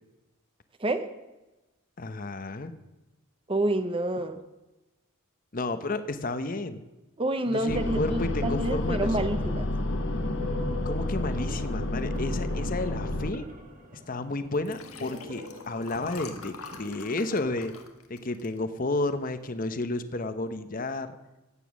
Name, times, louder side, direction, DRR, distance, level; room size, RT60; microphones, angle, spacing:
voice 1, 2.0-2.7 5.5-6.8 7.5-9.2 10.6-13.5 14.1-17.7 18.1-21.2, left 2 dB, 40° left, 10 dB, 0.9 m, -32 dB
voice 2, 3.5-4.4 7.2-9.6, right 1 dB, 25° right, 9 dB, 0.8 m, -28 dB
sound 1, 7.7-13.3, left 1 dB, 55° left, 1.2 m, -30 dB
sound 2, 10.4-17.8, equal, 40° right, 2.2 m, -45 dB
Liquid, 14.5-19.2 19.7-19.9 20.2-20.3, left 5 dB, 90° left, 1.6 m, -45 dB
15.5 x 9.1 x 6.3 m, 1.0 s
head